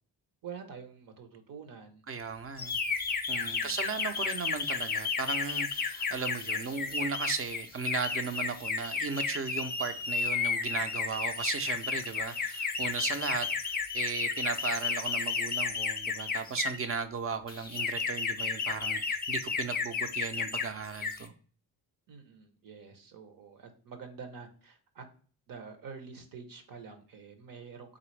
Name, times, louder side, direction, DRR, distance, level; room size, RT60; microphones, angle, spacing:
voice 1, 0.4-2.0 3.4-3.8 22.1-25.0 25.5-28.0, right 6 dB, 60° right, 0.9 m, -47 dB
voice 2, 2.1-2.8 3.3-21.3, right 5 dB, 35° right, 0.5 m, -36 dB
sound 1, 2.6-16.9 17.5-20.7 20.9-21.3, left 5 dB, 25° left, 0.5 m, -33 dB
3.9 x 3.4 x 3.1 m
cardioid pair, 125°, 39 cm